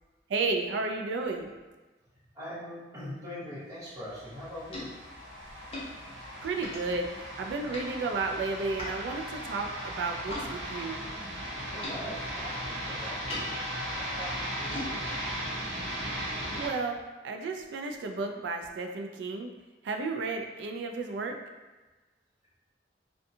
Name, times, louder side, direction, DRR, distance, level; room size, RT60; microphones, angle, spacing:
voice 1, 0.3-1.5 6.4-7.1 7.4-11.0 16.5-17.0 17.2-19.5 19.8-21.4, right 3 dB, 70° right, 4 dB, 0.3 m, -32 dB
voice 2, 2.3-4.9 11.7-13.6 13.9-15.2, equal, 20° right, -9 dB, 0.9 m, -42 dB
sound 1, 4.1-10.5 10.8-16.7, left 1 dB, 35° left, 0.7 m, -44 dB
sound 2, 4.1-16.7, equal, 90° right, 0.9 m, -37 dB
2.6 x 2.2 x 2.6 m, 1.2 s
head